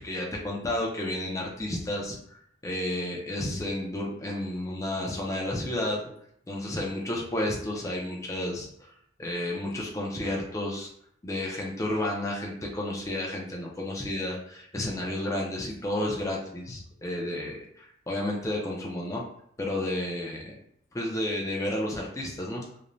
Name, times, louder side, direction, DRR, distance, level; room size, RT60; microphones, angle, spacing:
voice 1, 0.0-6.0 6.5-8.9 9.2-10.9 11.2-19.2 19.6-20.5 20.9-22.7, left 1 dB, 15° left, -2 dB, 0.4 m, -31 dB
2.5 x 2.0 x 3.0 m, 0.69 s
head